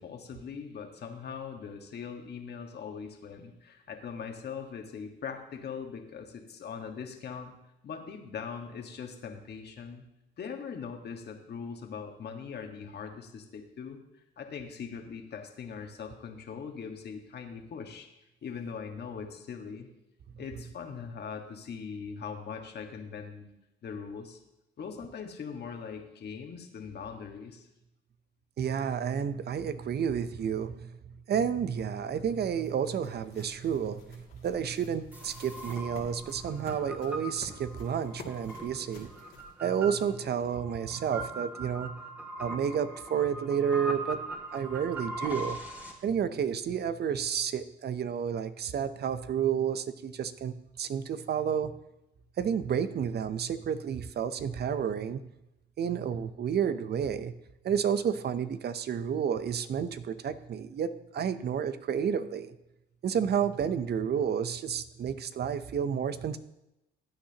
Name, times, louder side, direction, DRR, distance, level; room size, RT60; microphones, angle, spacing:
voice 1, 0.0-7.5 7.8-10.0 10.4-14.0 14.4-18.1 18.4-19.9 20.4-23.5 23.8-24.4 24.8-27.7, left 6 dB, 55° left, 4 dB, 1.6 m, -41 dB
voice 2, 28.6-30.9 31.3-39.1 39.6-41.9 42.4-44.2 44.5-45.6 46.0-51.7 52.4-55.2 55.8-57.3 57.6-62.5 63.0-66.4, right 8 dB, 55° right, 12 dB, 0.7 m, -30 dB
sound 1, 31.8-40.4, left 3 dB, 80° left, 2.5 m, -52 dB
sound 2, 35.1-45.9, right 2 dB, 10° right, 2.6 m, -41 dB
15.5 x 8.8 x 2.9 m, 0.90 s
cardioid pair, 90°, 20 cm